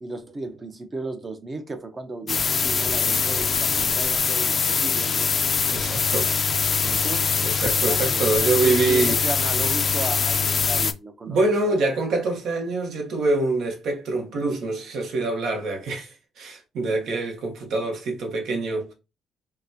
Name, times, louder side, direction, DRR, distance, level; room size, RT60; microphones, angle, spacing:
voice 1, 0.0-5.3 6.8-7.3 7.8-11.7, right 2 dB, 30° right, 0.6 m, -35 dB
sound 1, 2.3-10.9, left 6 dB, 45° left, 0.3 m, -23 dB
voice 2, 5.7-6.3 7.4-9.2 11.2-18.9, right 3 dB, 75° right, 0.9 m, -25 dB
3.9 x 2.1 x 2.7 m
cardioid pair, 90°, 0 cm